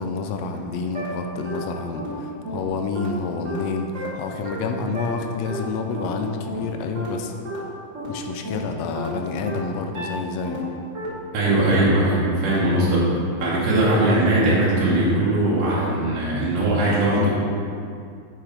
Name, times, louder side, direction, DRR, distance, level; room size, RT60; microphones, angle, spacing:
voice 1, 0.0-7.3 8.1-10.6 11.6-11.8 17.1-17.3, left 4 dB, 80° left, 4 dB, 1.5 m, -28 dB
sound 1, 0.5-0.6 0.9-1.1 1.4-1.6 1.9-2.1 2.4-2.6 2.9-3.1 3.4-3.6 3.9-4.1 4.4-4.6 4.9-5.1 5.4-5.6 5.9-6.1 6.4-6.6 6.9-7.1 7.4-7.6 7.9-8.1 8.4-8.6 8.9-9.1 9.4-9.6 9.9-10.1 10.4-10.6 10.9-11.1 11.4-11.6 11.9-12.1 12.4-12.6, right 2 dB, 40° right, 1.1 m, -33 dB
voice 2, 11.3-13.0 13.4-17.3, right 1 dB, 65° right, -7 dB, 2.2 m, -20 dB
7.5 x 4.7 x 5.1 m, 2.4 s
omnidirectional pair, 3.4 m